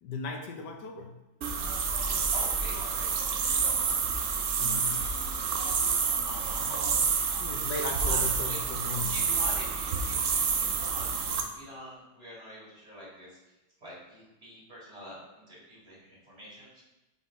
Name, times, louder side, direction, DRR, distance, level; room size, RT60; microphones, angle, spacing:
voice 1, 0.0-1.2 4.6-5.1 7.4-9.2, left 3 dB, 80° left, 3 dB, 1.5 m, -37 dB
sound 1, 1.4-11.4, right 5 dB, 60° right, 0.9 m, -28 dB
voice 2, 2.0-4.0 4.6-7.3 7.9-8.6 9.1-13.4 13.8-16.8, equal, 35° right, -7 dB, 2.7 m, -46 dB
5.7 x 3.9 x 5.0 m, 1.0 s
omnidirectional pair, 1.8 m